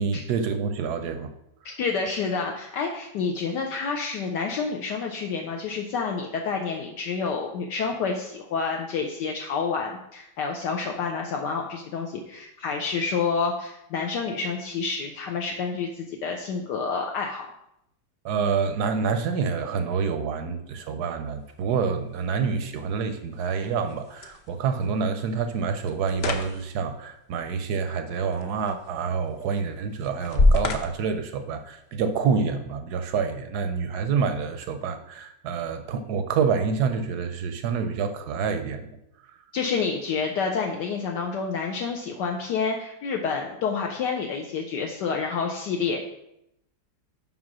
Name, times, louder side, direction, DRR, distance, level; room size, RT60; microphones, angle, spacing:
voice 1, 0.0-1.3 18.2-38.9, right 5 dB, 70° right, 8 dB, 1.0 m, -27 dB
voice 2, 1.8-17.5 39.5-46.0, left 5 dB, 70° left, 1 dB, 1.2 m, -28 dB
sound 1, 21.2-32.2, left 2 dB, 85° left, 0.5 m, -31 dB
5.6 x 5.0 x 6.0 m, 0.81 s
omnidirectional pair, 2.1 m